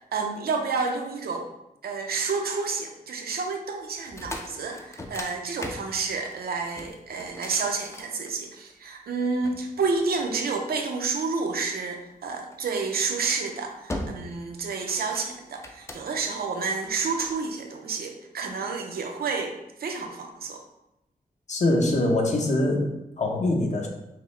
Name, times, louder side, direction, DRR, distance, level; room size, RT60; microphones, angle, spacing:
voice 1, 0.1-1.5 1.8-20.6, right 4 dB, 85° right, 3 dB, 0.6 m, -30 dB
sound 1, 4.0-8.7 9.4-10.7 12.5-12.8 13.3-13.5 13.9-14.4 14.7-16.3 16.8-17.4, left 1 dB, 20° left, 0.4 m, -39 dB
voice 2, 21.5-23.9, left 1 dB, 50° left, 1 dB, 0.7 m, -24 dB
5.7 x 2.1 x 3.2 m, 0.88 s
wide cardioid pair, 130°, 15 cm